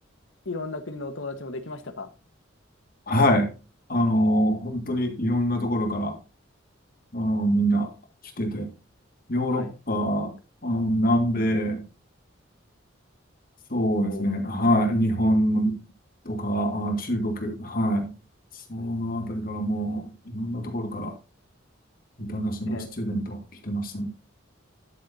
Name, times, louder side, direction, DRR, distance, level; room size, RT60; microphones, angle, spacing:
voice 1, 0.4-2.1 9.5-9.7 14.0-14.3 22.6-22.9, left 2 dB, 75° left, 1.3 m, -35 dB
voice 2, 3.1-3.5 3.9-6.2 7.1-7.9 8.4-8.7 9.3-10.3 10.6-11.8 13.7-15.8 16.3-18.1 18.5-21.1 22.2-24.1, equal, 45° left, 1.9 m, -25 dB
12.0 x 7.1 x 2.7 m
head